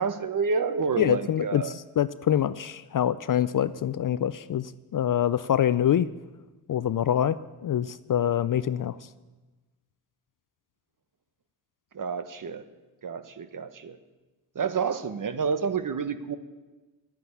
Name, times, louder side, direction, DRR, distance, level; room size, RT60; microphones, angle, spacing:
voice 1, 0.0-1.7 11.9-12.6 13.0-14.0 14.5-16.4, right 5 dB, 40° right, 11 dB, 1.2 m, -29 dB
voice 2, 1.0-6.1 6.7-9.0, left 10 dB, 40° left, 15 dB, 0.5 m, -25 dB
12.0 x 9.4 x 8.5 m, 1.2 s
supercardioid pair, 60°, 50 cm